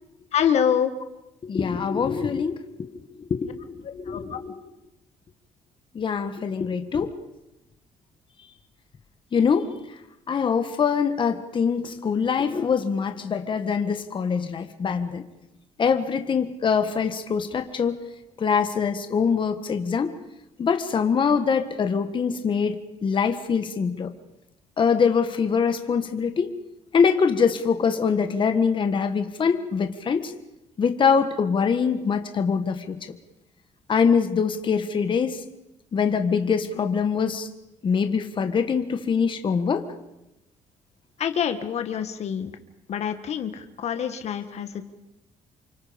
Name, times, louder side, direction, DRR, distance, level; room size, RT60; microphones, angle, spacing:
voice 1, 0.3-1.0 4.1-4.4 41.2-42.5 42.9-44.7, left 8 dB, 60° left, 8 dB, 1.7 m, -26 dB
voice 2, 1.5-2.5 3.3-3.6 4.0-4.5 5.9-7.1 9.3-9.7 10.3-15.2 15.8-17.9 18.4-20.1 20.6-24.1 24.8-26.5 26.9-30.3 30.8-33.0 33.9-35.4 35.9-37.5 37.8-39.9, left 6 dB, 40° left, 7 dB, 1.7 m, -23 dB
29.0 x 25.0 x 5.3 m, 0.93 s
cardioid pair, 105°, 12 cm